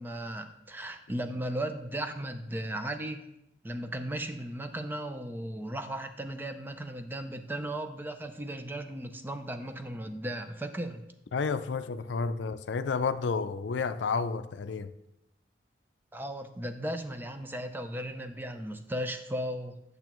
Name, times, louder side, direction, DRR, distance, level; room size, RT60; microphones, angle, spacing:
voice 1, 0.0-3.2 3.6-11.0 16.1-19.8, right 1 dB, 10° right, 0.5 m, -36 dB
voice 2, 11.3-14.9, left 4 dB, 90° left, 0.5 m, -31 dB
10.5 x 6.7 x 3.0 m
head